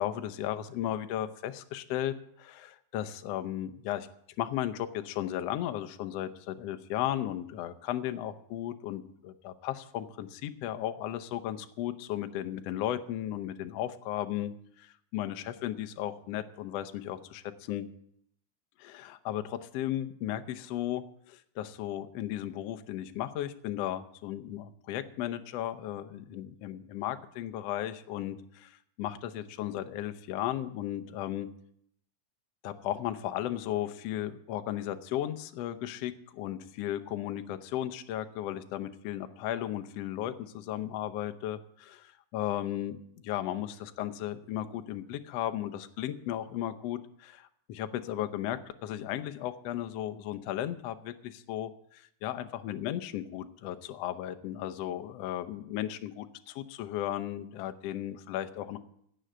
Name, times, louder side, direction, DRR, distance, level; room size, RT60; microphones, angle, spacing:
voice 1, 0.0-4.1 4.4-14.5 14.8-17.4 17.7-17.9 18.8-21.0 21.3-31.5 32.6-58.8, left 12 dB, 75° left, 9 dB, 1.5 m, -35 dB
16.5 x 6.3 x 7.9 m, 0.70 s
omnidirectional pair, 3.8 m